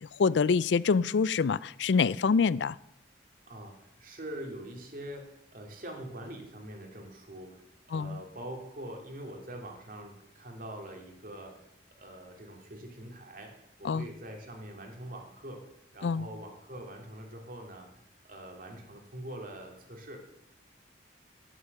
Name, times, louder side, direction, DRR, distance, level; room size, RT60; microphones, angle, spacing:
voice 1, 0.0-2.8 7.9-8.2 13.8-14.1 16.0-16.3, left 5 dB, 80° left, 0.4 m, -26 dB
voice 2, 3.4-11.6 12.0-15.6 15.9-17.9 18.2-20.3, right 1 dB, 50° right, 2.6 m, -44 dB
11.5 x 11.0 x 6.7 m
head